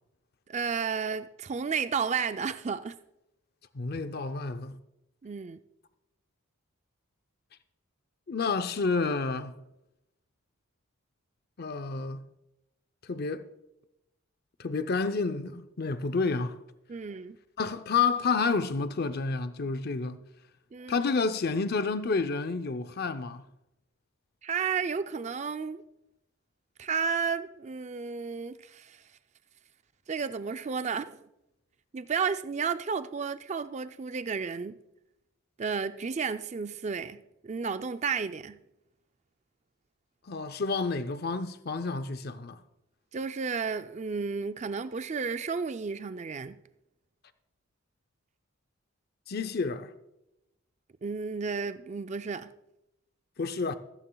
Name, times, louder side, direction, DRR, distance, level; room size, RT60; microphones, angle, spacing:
voice 1, 0.5-2.9 5.2-5.6 16.9-17.4 20.7-21.1 24.4-25.8 26.8-29.0 30.1-31.2 31.9-34.8 35.6-38.6 43.1-46.6 51.0-52.5, right 5 dB, 30° right, 0.4 m, -32 dB
voice 2, 3.7-4.8 8.3-9.5 11.6-12.2 13.1-13.4 14.6-16.6 17.6-20.2 20.9-23.4 40.3-42.6 49.3-49.9 53.4-53.7, left 4 dB, 45° left, 0.6 m, -29 dB
15.5 x 14.0 x 2.3 m
head